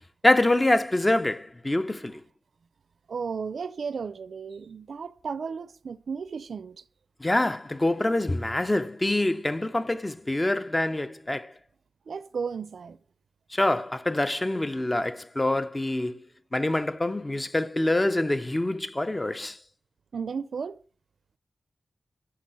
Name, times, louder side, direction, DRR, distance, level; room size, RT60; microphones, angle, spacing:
voice 1, 0.2-2.2 7.2-11.5 13.5-16.2 16.5-19.6, left 1 dB, 15° left, 0.7 m, -25 dB
voice 2, 3.1-6.8 12.1-13.0 20.1-20.8, right 5 dB, 65° right, 0.7 m, -34 dB
14.5 x 6.1 x 7.8 m
wide cardioid pair, 125°, 0 cm